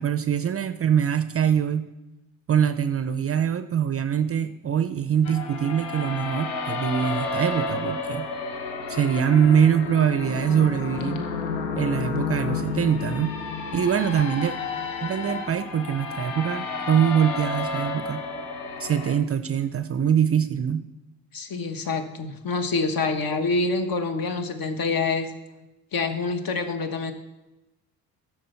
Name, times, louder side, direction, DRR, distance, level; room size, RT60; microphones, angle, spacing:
voice 1, 0.0-1.9 2.5-8.3 8.9-11.3 11.8-13.4 13.7-14.5 15.0-18.2 18.8-20.8, right 8 dB, 30° right, 10 dB, 0.5 m, -23 dB
sound 1, 5.2-19.1, left 4 dB, 90° left, 1.0 m, -31 dB
voice 2, 21.3-25.3 25.9-27.1, left 3 dB, 45° left, 8 dB, 1.2 m, -26 dB
13.0 x 4.7 x 4.4 m, 1.0 s
hypercardioid pair, 55°, 47 cm